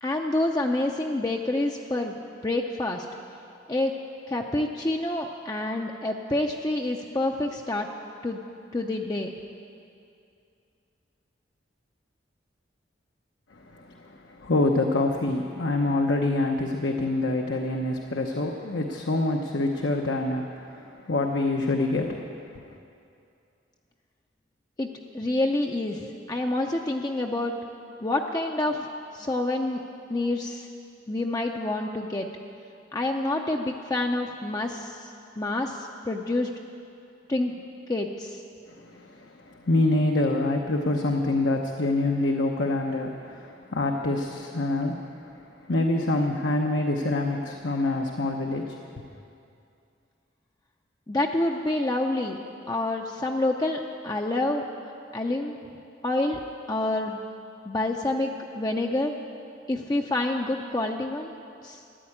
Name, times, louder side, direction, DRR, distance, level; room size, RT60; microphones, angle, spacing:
voice 1, 0.0-3.1 3.7-3.9 4.3-7.9 8.2-8.4 8.7-9.3 24.8-24.9 25.1-27.6 28.0-28.9 29.1-29.8 30.1-30.7 31.1-32.3 32.9-36.5 37.3-38.4 51.1-52.4 52.7-54.6 55.1-55.6 56.0-56.4 56.7-57.2 57.7-59.2 59.7-61.4 61.6-61.8, left 2 dB, 20° left, 2 dB, 0.6 m, -27 dB
voice 2, 13.5-22.7 38.8-49.1, left 2 dB, 75° left, 2 dB, 0.9 m, -26 dB
14.0 x 11.0 x 8.6 m, 2.6 s
head